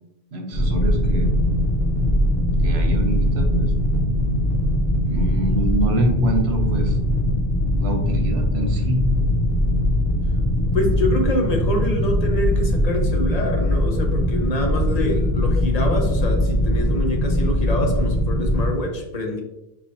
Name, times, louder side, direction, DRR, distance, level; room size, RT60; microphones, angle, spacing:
voice 1, 0.3-1.3 2.6-3.7 5.1-7.0 7.7-9.0, right 1 dB, 80° right, 3 dB, 1.1 m, -25 dB
sound 1, 0.5-18.7, left 1 dB, 65° left, 1.0 m, -21 dB
voice 2, 10.7-19.4, left 1 dB, 40° left, 2 dB, 0.8 m, -25 dB
4.6 x 3.3 x 2.7 m, 0.88 s
omnidirectional pair, 1.1 m